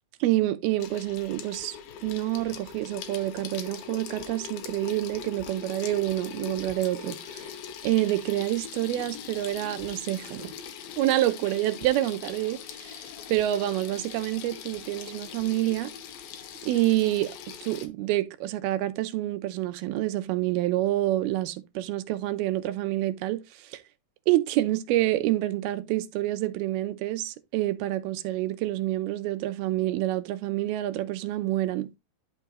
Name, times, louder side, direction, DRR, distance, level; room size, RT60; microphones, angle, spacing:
voice 1, 0.2-1.8 2.0-7.5 7.8-10.5 11.0-13.0 13.3-15.9 16.6-17.3 17.6-23.4 23.7-23.8 24.3-31.9, right 15 dB, 90° right, 2.7 m, -27 dB
Water tap faucet / Sink (filling or washing), 0.8-17.9, left 8 dB, 80° left, 2.9 m, -41 dB
11.5 x 4.6 x 3.0 m
omnidirectional pair, 4.4 m